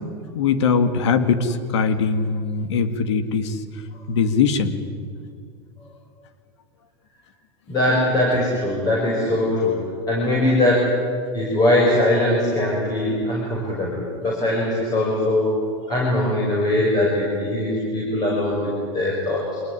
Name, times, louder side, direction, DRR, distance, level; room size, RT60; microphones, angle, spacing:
voice 1, 0.3-3.6 4.1-4.8, left 5 dB, 80° left, 11 dB, 2.1 m, -21 dB
voice 2, 7.7-9.8 10.1-10.9 11.3-15.6 15.9-19.6, left 1 dB, 25° left, -3 dB, 6.5 m, -21 dB
25.5 x 20.5 x 10.0 m, 2.2 s
supercardioid pair, 135°, 15 cm